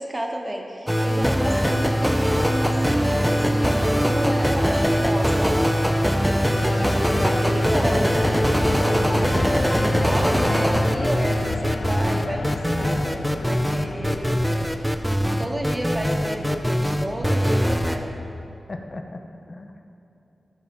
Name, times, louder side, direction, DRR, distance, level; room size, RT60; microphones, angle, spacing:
voice 1, 0.0-5.6 6.9-14.4 15.4-18.1, right 1 dB, 20° right, 1 dB, 1.2 m, -31 dB
sound 1, 0.9-18.0, equal, ahead, 0.5 m, -21 dB
sound 2, 6.5-17.3, left 5 dB, 80° left, 0.3 m, -33 dB
voice 2, 18.7-19.8, left 2 dB, 45° left, 4 dB, 0.8 m, -38 dB
14.0 x 5.5 x 5.3 m, 2.8 s
wide cardioid pair, 115°, 0 cm